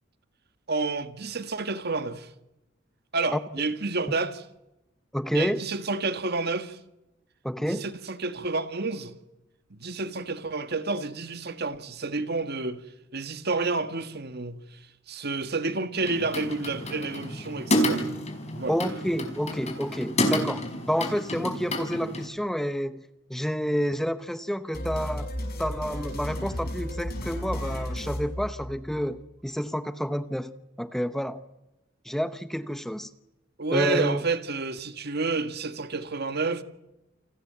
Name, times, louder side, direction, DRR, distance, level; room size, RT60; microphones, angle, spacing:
voice 1, 0.7-2.3 3.1-4.4 5.3-6.8 7.7-9.1 9.7-12.8 13.1-14.8 15.1-18.0 18.5-18.8 33.6-36.6, right 3 dB, 55° right, 1.7 m, -30 dB
voice 2, 5.1-5.6 7.4-7.9 18.7-25.3 25.6-31.4 32.0-33.1 33.7-34.2, equal, ahead, 0.9 m, -29 dB
sound 1, 16.0-22.3, equal, 35° left, 4.8 m, -30 dB
sound 2, 24.7-29.1, equal, 50° left, 6.4 m, -34 dB
29.0 x 19.0 x 8.2 m
head